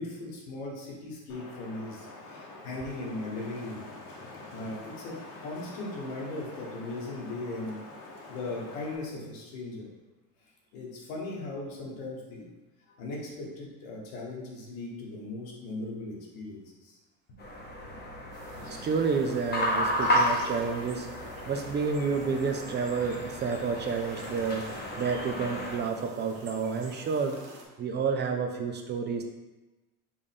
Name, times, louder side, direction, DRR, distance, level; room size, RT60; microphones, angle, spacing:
voice 1, 0.0-3.8 4.5-7.8 8.3-9.9 10.7-12.5 12.9-17.0, left 2 dB, 85° left, -3 dB, 1.3 m, -38 dB
Wind, 1.3-9.0, left 2 dB, 55° left, 1.0 m, -46 dB
sound 1, 17.4-25.8, left 1 dB, 25° left, 0.9 m, -32 dB
sound 2, 18.3-27.6, right 3 dB, 85° right, 1.1 m, -47 dB
voice 2, 18.8-27.4 27.8-29.2, right 5 dB, 30° right, 4 dB, 0.4 m, -30 dB
5.1 x 2.5 x 3.5 m, 1.1 s
supercardioid pair, 105°, 39 cm